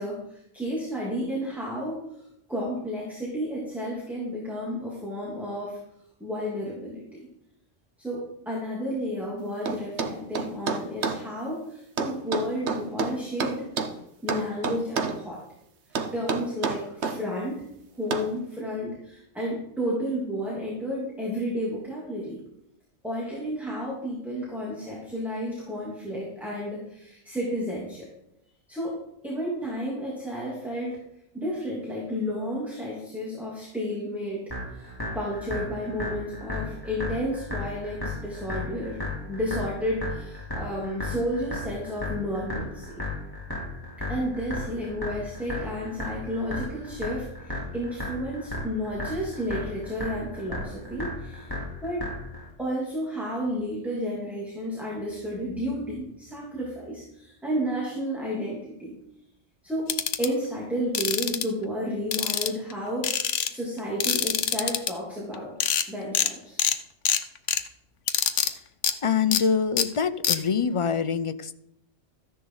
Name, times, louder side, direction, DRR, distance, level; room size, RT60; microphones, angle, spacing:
voice 1, 0.0-2.0 2.5-5.8 6.2-7.2 8.0-13.7 14.2-15.4 16.1-17.7 18.0-22.4 23.0-28.1 28.7-29.0 29.2-31.0 31.3-39.0 39.3-43.0 44.1-51.5 51.8-52.0 52.6-58.9 59.6-59.9 60.2-65.5 65.9-66.6, equal, ahead, -5 dB, 3.0 m, -32 dB
sound 1, 9.7-11.2 12.0-14.0 14.3-15.2 15.9-17.2 18.1-18.3, right 5 dB, 70° right, 1.3 m, -29 dB
sound 2, 34.5-52.5, left 2 dB, 20° left, 3.1 m, -35 dB
sound 3, 59.9-60.3 60.9-61.4 62.1-62.7 63.0-63.5 64.0-64.9 65.3-65.4 65.6-65.8 66.1-66.3 66.6-66.8 67.0-67.6 68.1-68.5 68.8-68.9 69.3-69.4 69.8-69.9 70.2-70.4, left 8 dB, 80° left, 1.1 m, -24 dB
voice 2, 69.0-71.6, left 6 dB, 40° left, 11 dB, 0.5 m, -25 dB
14.0 x 10.5 x 4.0 m, 0.80 s
omnidirectional pair, 1.2 m